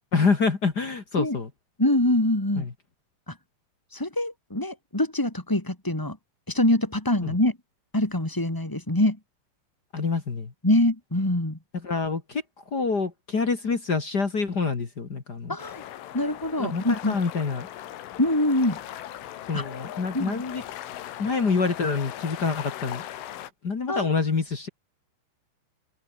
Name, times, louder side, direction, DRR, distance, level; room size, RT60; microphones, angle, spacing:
voice 1, 0.1-1.5 2.5-2.7 7.2-7.4 9.9-10.5 11.7-15.6 16.6-17.7 19.5-20.6 21.2-23.0 23.6-24.7, left 4 dB, 40° left, 1.4 m, -26 dB
voice 2, 1.8-2.7 3.3-3.4 3.9-6.2 6.5-7.6 7.9-9.2 10.6-11.6 15.5-15.8 16.1-17.1 18.2-18.8 19.5-19.6 20.1-20.4 23.9-24.1, left 1 dB, 20° left, 0.5 m, -24 dB
sound 1, 15.6-23.5, left 12 dB, 85° left, 4.4 m, -39 dB
open air
omnidirectional pair, 5.5 m